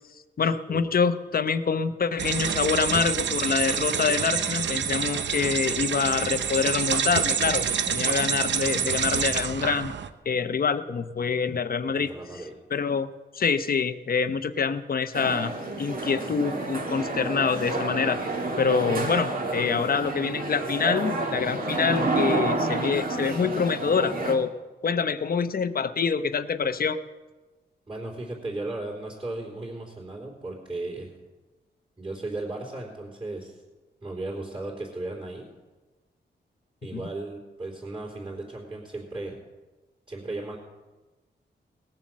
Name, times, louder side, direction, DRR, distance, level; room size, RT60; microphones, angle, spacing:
voice 1, 0.4-9.9 10.3-12.1 12.7-15.5 15.8-18.2 18.6-24.5 24.8-27.0 36.9-37.0, left 5 dB, 50° left, 11 dB, 0.8 m, -26 dB
sound 1, 2.2-10.1, right 7 dB, 75° right, 0.7 m, -27 dB
voice 2, 11.9-12.5 27.9-31.1 32.0-33.6 34.0-35.5 36.8-39.4 40.1-40.6, right 2 dB, 25° right, -5 dB, 3.8 m, -35 dB
sound 2, 15.1-24.4, right 2 dB, 50° right, 2.2 m, -29 dB
18.5 x 7.4 x 7.5 m, 1.2 s
wide cardioid pair, 110°, 19 cm